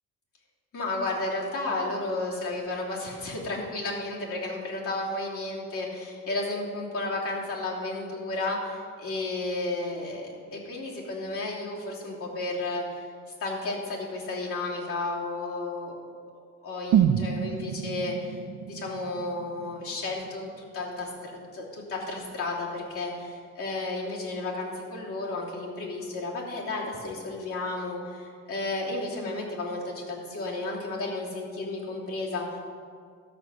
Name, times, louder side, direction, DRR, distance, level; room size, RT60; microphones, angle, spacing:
voice 1, 0.7-13.1 13.4-15.9 16.3-18.4 18.6-32.6, left 2 dB, 45° left, -5 dB, 3.0 m, -33 dB
sound 1, 16.9-20.9 21.2-21.3, right 9 dB, 70° right, 0.6 m, -28 dB
13.5 x 7.3 x 6.3 m, 2.1 s
cardioid pair, 165°, 31 cm